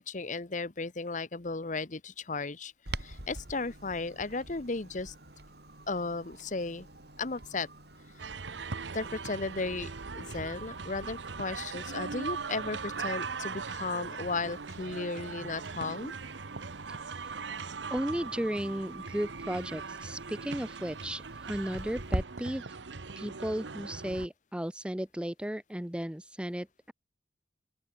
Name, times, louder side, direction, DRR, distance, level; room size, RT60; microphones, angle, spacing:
voice 1, 0.0-2.7 3.0-5.1 5.9-6.9 7.2-7.7 8.9-16.1, left 3 dB, 45° left, 1.1 m, -35 dB
Clock, 2.8-22.2, right 1 dB, 60° right, 6.0 m, -46 dB
sound 1, 8.2-24.3, right 4 dB, 85° right, 1.1 m, -40 dB
voice 2, 16.9-17.4 17.9-22.7 23.2-26.9, equal, 5° right, 0.7 m, -35 dB
open air
head